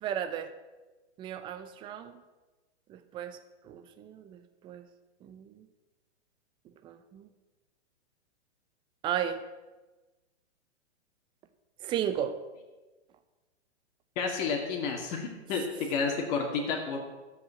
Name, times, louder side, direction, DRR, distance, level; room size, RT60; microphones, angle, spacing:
voice 1, 0.0-0.5 1.2-2.2 2.9-3.4 3.6-4.9 5.2-5.7 6.8-7.3 9.0-9.4 11.8-12.4, right 9 dB, 15° right, 11 dB, 0.6 m, -34 dB
voice 2, 14.2-17.0, left 5 dB, 35° left, 1 dB, 2.2 m, -31 dB
12.0 x 8.2 x 8.4 m, 1.2 s
hypercardioid pair, 150°, 35 cm